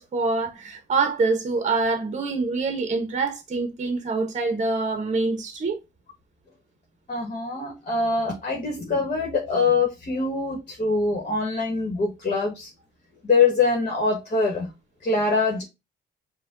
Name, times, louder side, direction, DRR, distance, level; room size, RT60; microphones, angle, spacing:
voice 1, 0.0-5.8, right 3 dB, 35° right, 0.9 m, -25 dB
voice 2, 7.1-12.7 13.2-14.7 15.0-15.6, left 4 dB, 40° left, 1.3 m, -24 dB
4.9 x 2.3 x 3.7 m
cardioid pair, 90°, 20 cm